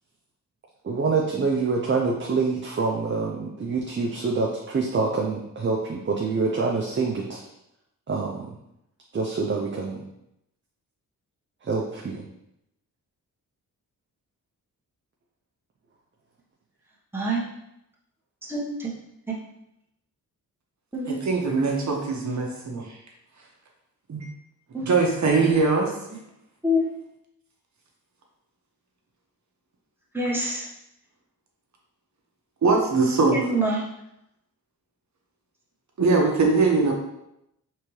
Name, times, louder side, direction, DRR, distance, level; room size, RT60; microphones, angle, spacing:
voice 1, 0.8-7.4 8.1-8.5 9.1-10.0 11.6-12.2, right 4 dB, 35° right, -1 dB, 0.6 m, -26 dB
voice 2, 17.1-17.5 18.5-18.9 20.9-21.2 24.7-24.9 26.6-26.8 30.1-30.7 33.3-33.8, equal, 5° right, -5 dB, 1.2 m, -25 dB
voice 3, 21.1-22.9 24.1-24.3 24.8-25.9 32.6-33.4 36.0-36.9, right 4 dB, 55° right, 0 dB, 0.9 m, -21 dB
4.5 x 3.4 x 3.2 m, 0.82 s
cardioid pair, 90°, 35 cm